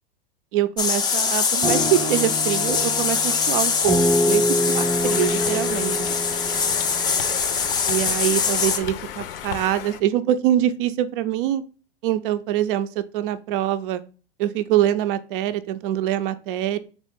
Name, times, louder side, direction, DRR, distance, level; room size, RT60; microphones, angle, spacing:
voice 1, 0.5-6.1 7.9-11.6 12.0-14.0 14.4-16.8, right 12 dB, 65° right, 0.5 m, -24 dB
sound 1, 0.8-8.8, left 6 dB, 15° left, 0.3 m, -23 dB
sound 2, 1.6-7.7, equal, ahead, 0.8 m, -26 dB
Conversation, 4.8-10.0, left 10 dB, 70° left, 0.5 m, -34 dB
4.0 x 2.4 x 3.4 m
hypercardioid pair, 105°, 29 cm